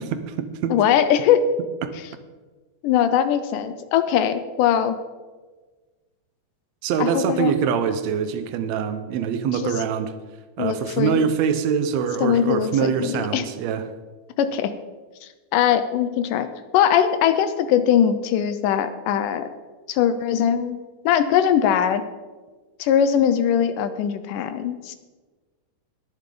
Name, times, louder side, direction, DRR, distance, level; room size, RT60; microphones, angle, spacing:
voice 1, 0.0-0.7 1.8-1.9 6.8-10.1 10.6-13.9, right 7 dB, 70° right, 9 dB, 1.9 m, -24 dB
voice 2, 0.7-1.5 2.8-5.0 7.0-7.5 9.5-9.7 10.6-11.3 12.2-13.4 14.4-14.7 15.5-16.5 16.7-19.5 19.9-20.8 21.1-22.0 22.8-25.0, left 9 dB, 85° left, 11 dB, 2.3 m, -21 dB
21.5 x 7.1 x 3.8 m, 1.3 s
omnidirectional pair, 3.7 m